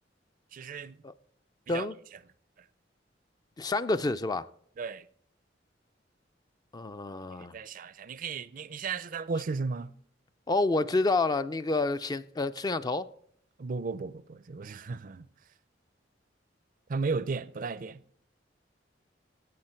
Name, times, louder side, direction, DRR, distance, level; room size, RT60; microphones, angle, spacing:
voice 1, 0.5-1.0 1.7-1.9 4.8-5.1 7.5-9.9 13.6-15.3 16.9-18.0, right 4 dB, 45° right, 0.5 m, -34 dB
voice 2, 3.6-4.5 6.7-7.6 10.5-13.1, left 3 dB, 20° left, 0.4 m, -28 dB
16.0 x 8.6 x 4.4 m
head